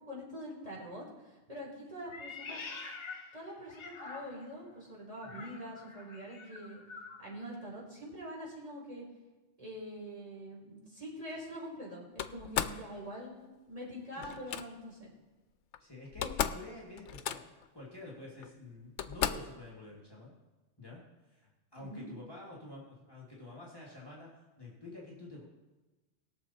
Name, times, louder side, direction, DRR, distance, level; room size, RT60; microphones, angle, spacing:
voice 1, 0.0-2.6 3.3-6.8 7.2-9.0 9.6-15.1 21.8-22.1, equal, 30° right, -5 dB, 3.9 m, -45 dB
Meow, 2.1-4.6 5.2-7.2, left 4 dB, 55° left, 1.6 m, -46 dB
Slam, 12.2-12.8 14.2-14.6 15.7-15.8 16.1-16.7 17.0-17.7 18.4-18.5 19.0-19.6, left 9 dB, 85° left, 0.9 m, -35 dB
voice 2, 15.8-17.4 17.7-20.3 20.8-25.4, left 2 dB, 20° left, -5 dB, 2.3 m, -49 dB
20.5 x 6.9 x 4.2 m, 1.2 s
omnidirectional pair, 1.2 m